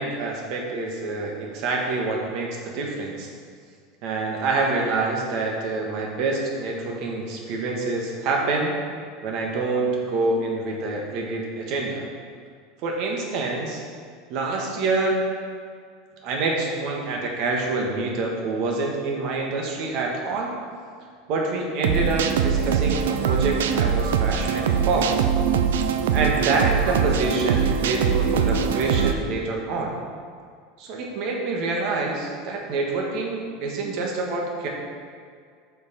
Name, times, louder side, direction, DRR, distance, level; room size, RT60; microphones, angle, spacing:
voice 1, 0.0-3.3 4.0-8.7 9.2-12.1 12.8-13.8 14.3-15.2 16.2-20.5 21.3-25.2 26.1-30.0 30.8-34.7, right 3 dB, 55° right, -1 dB, 1.5 m, -26 dB
sound 1, 21.8-29.1, right 7 dB, 90° right, 0.5 m, -22 dB
6.4 x 5.0 x 5.3 m, 2.1 s
supercardioid pair, 125°, 0 cm